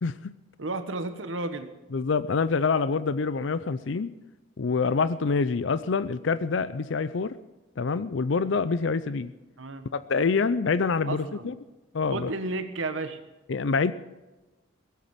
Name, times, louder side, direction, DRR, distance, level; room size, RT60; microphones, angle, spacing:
voice 1, 0.0-0.3 1.9-4.1 4.6-7.4 7.8-9.3 9.9-11.5 11.9-12.3 13.5-13.9, left 4 dB, 70° left, 15 dB, 0.5 m, -26 dB
voice 2, 0.6-1.7 9.6-9.8 11.0-11.5 12.1-13.2, right 2 dB, 85° right, 8 dB, 1.3 m, -32 dB
18.0 x 8.4 x 7.3 m, 1.1 s
head